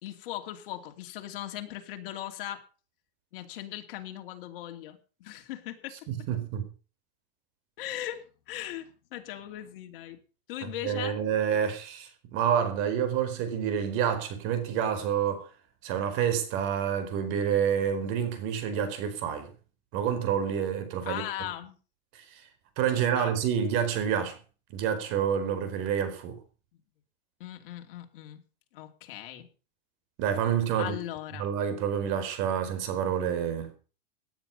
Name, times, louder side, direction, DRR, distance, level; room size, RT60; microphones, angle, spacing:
voice 1, 0.0-2.6 3.3-6.0 7.8-10.2 10.5-11.2 21.1-21.8 22.9-23.3 27.4-28.4 28.7-29.5 30.8-31.5, left 13 dB, 65° left, 2.9 m, -39 dB
voice 2, 6.1-6.6 10.8-15.5 15.8-19.5 19.9-21.2 22.1-22.4 22.8-24.4 24.7-26.4 30.2-31.0 31.4-33.7, right 8 dB, 45° right, 4.5 m, -28 dB
18.0 x 10.5 x 5.5 m
supercardioid pair, 155°, 30 cm